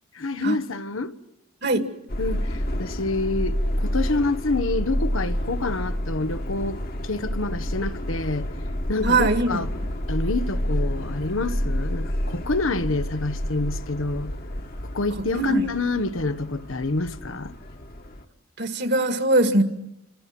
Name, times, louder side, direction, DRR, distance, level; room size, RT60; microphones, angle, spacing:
voice 1, 0.1-1.1 2.2-8.5 8.9-9.7 10.1-14.3 14.9-17.5, left 2 dB, 85° left, 1.3 m, -27 dB
Subway metro underground, 2.1-18.2, equal, 50° left, 1.7 m, -29 dB
voice 2, 9.0-9.6 15.3-15.7 18.6-19.6, right 2 dB, 55° right, 2.3 m, -21 dB
27.5 x 27.0 x 6.1 m
head